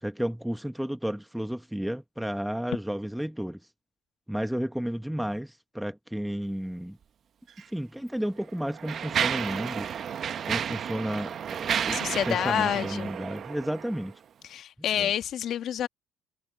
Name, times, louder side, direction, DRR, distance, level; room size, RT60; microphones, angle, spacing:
voice 1, 0.0-3.6 4.3-7.0 7.7-9.9 10.4-12.0 12.3-14.1 15.0-15.1, equal, 5° right, 1.0 m, -32 dB
Mechanisms, 7.5-7.6 8.4-14.1, right 8 dB, 50° right, 1.1 m, -32 dB
voice 2, 11.9-13.1 14.4-15.9, left 10 dB, 60° left, 1.4 m, -28 dB
cardioid pair, 105°, 0 cm